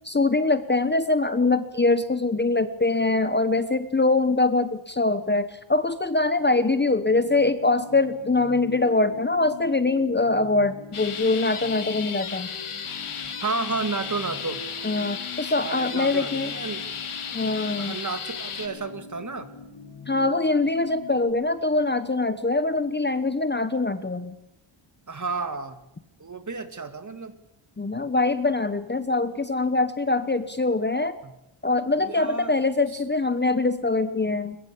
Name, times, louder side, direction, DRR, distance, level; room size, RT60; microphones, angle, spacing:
voice 1, 0.0-12.5 14.8-16.5 17.3-18.0 20.1-24.4 27.8-31.2 31.6-34.6, left 3 dB, 20° left, 11 dB, 1.1 m, -23 dB
sound 1, 6.5-21.3, left 3 dB, 60° left, 5.3 m, -43 dB
sound 2, 10.9-18.7, left 6 dB, 80° left, 3.2 m, -34 dB
voice 2, 13.4-14.6 15.6-16.9 17.8-19.5 25.1-25.8 26.2-27.4 31.2-31.3 32.0-32.5 32.9-33.0, right 4 dB, 35° right, 9 dB, 2.2 m, -32 dB
22.0 x 21.5 x 8.4 m, 0.84 s
wide cardioid pair, 135°, 50 cm